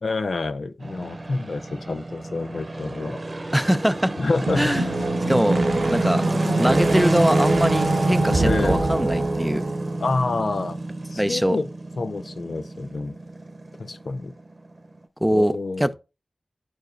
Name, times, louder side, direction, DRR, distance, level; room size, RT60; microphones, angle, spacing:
voice 1, 0.0-3.2 4.2-4.8 8.4-8.9 10.0-10.8 11.1-11.7 12.0-13.2 13.8-14.3 15.3-15.9, left 3 dB, 75° left, 0.6 m, -27 dB
sound 1, 0.8-15.0, right 1 dB, 45° right, 0.9 m, -28 dB
voice 2, 3.5-4.2 4.6-4.9 5.3-5.6 5.9-6.2 6.6-9.6 11.2-11.6 15.2-16.0, equal, 5° right, 0.5 m, -22 dB
sound 2, 4.4-10.0, right 2 dB, 80° right, 0.7 m, -24 dB
11.5 x 4.7 x 2.5 m
wide cardioid pair, 65°, 0 cm